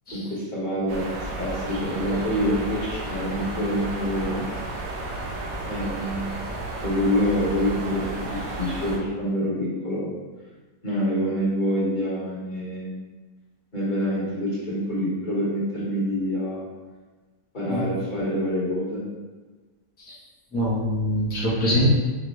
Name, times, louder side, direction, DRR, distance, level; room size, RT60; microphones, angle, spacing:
voice 1, 0.1-1.0 1.4-4.5 5.7-6.2 6.8-10.1 10.8-12.9 13.7-16.6 17.5-19.0, equal, 30° left, -9 dB, 1.3 m, -26 dB
sound 1, 0.9-9.0, right 2 dB, 75° right, 1.2 m, -32 dB
voice 2, 20.5-21.9, equal, 10° left, -9 dB, 0.5 m, -23 dB
5.4 x 2.4 x 3.1 m, 1.3 s
omnidirectional pair, 1.9 m